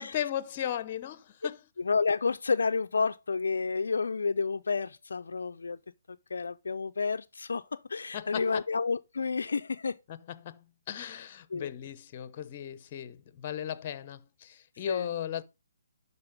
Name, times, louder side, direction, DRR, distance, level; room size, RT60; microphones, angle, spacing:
voice 1, 0.0-1.6 8.1-8.6 10.1-15.4, left 10 dB, 35° left, 0.7 m, -36 dB
voice 2, 1.8-5.8 6.1-10.0 11.0-11.1 11.5-11.7 14.9-15.1, left 4 dB, 70° left, 0.4 m, -30 dB
11.5 x 4.1 x 4.9 m
figure-of-eight pair, 145°, 0 cm